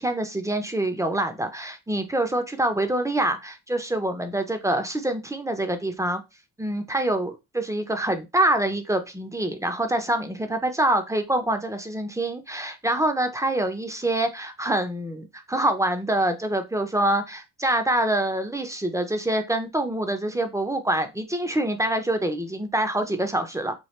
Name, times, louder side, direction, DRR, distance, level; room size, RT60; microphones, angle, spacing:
voice 1, 0.0-6.2 6.6-23.7, right 1 dB, 10° right, 7 dB, 0.5 m, -25 dB
3.0 x 2.2 x 3.1 m, 0.24 s
cardioid pair, 80°, 39 cm